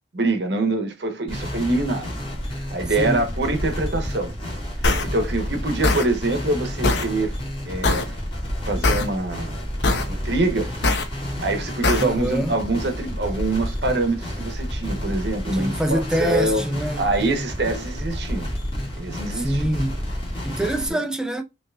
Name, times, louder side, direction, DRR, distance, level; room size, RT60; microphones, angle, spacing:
voice 1, 0.1-2.1 2.5-4.3 5.0-7.3 7.7-8.2 8.7-9.7 10.1-10.7 11.4-16.6 17.0-18.5 19.0-19.6 20.9-21.0, right 2 dB, 70° right, 1.0 m, -25 dB
sound 1, 1.3-20.9, equal, 30° left, 2.0 m, -30 dB
sound 2, 4.8-5.0 5.8-6.0 6.8-7.0 7.8-8.0 8.8-9.0 9.8-10.0 10.8-11.0 11.8-12.0, left 2 dB, 70° left, 0.9 m, -20 dB
voice 2, 12.0-12.6 15.5-17.1 19.4-20.0 20.4-21.4, right 1 dB, 5° right, 0.5 m, -25 dB
5.7 x 3.0 x 2.3 m
head